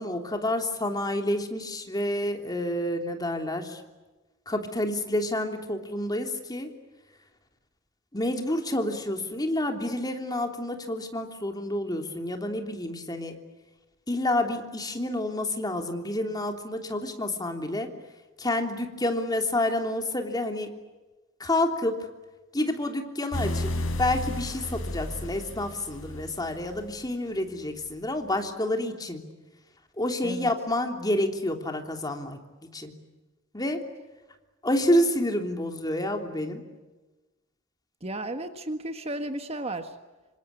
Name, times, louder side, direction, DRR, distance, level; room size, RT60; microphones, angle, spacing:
voice 1, 0.0-3.8 4.5-6.7 8.1-13.3 14.1-17.9 18.4-20.8 21.4-22.1 22.5-29.2 30.0-32.4 32.7-32.9 33.5-33.9 34.6-36.6, left 1 dB, 20° left, 4 dB, 3.2 m, -29 dB
sound 1, 23.3-26.9, left 1 dB, 80° left, 5.6 m, -33 dB
voice 2, 38.0-39.9, right 1 dB, 30° right, 8 dB, 1.6 m, -33 dB
27.0 x 26.0 x 8.3 m, 1.2 s
head